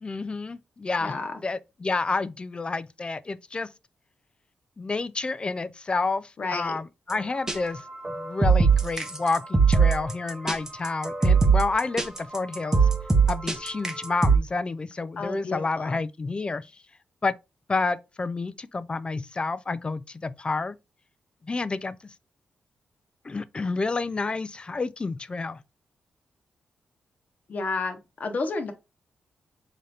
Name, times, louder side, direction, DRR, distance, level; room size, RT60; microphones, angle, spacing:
voice 1, 0.0-1.2 1.4-3.7 4.8-12.9 13.3-16.7 17.2-17.3 17.7-20.8 21.5-22.0 23.2-25.6, left 3 dB, 30° left, 0.3 m, -29 dB
voice 2, 1.0-1.3 6.4-6.8 15.2-16.0 27.5-28.7, left 3 dB, 50° left, 0.9 m, -31 dB
sound 1, 7.1-7.2 7.5-7.6 8.0-14.4, right 5 dB, 15° right, 0.7 m, -20 dB
3.8 x 2.7 x 3.3 m
cardioid pair, 80°, 3 cm